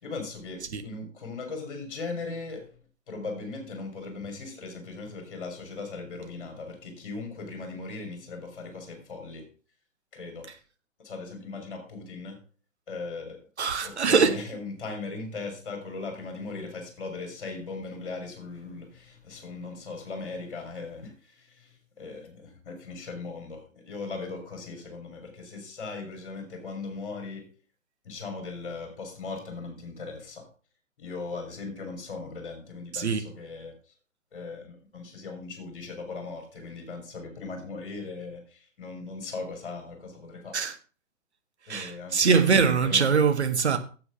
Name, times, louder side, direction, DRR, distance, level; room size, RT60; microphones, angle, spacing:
voice 1, 0.0-2.7 3.1-9.5 10.1-10.5 11.0-12.4 12.9-13.4 13.8-27.5 28.0-30.5 31.0-33.8 34.3-40.6 41.7-43.2, left 3 dB, 40° left, 4.5 m, -38 dB
voice 2, 13.6-14.3 32.9-33.3 40.5-40.7 41.7-43.8, right 6 dB, 55° right, 1.8 m, -22 dB
8.8 x 7.9 x 5.8 m
figure-of-eight pair, 130°, 39 cm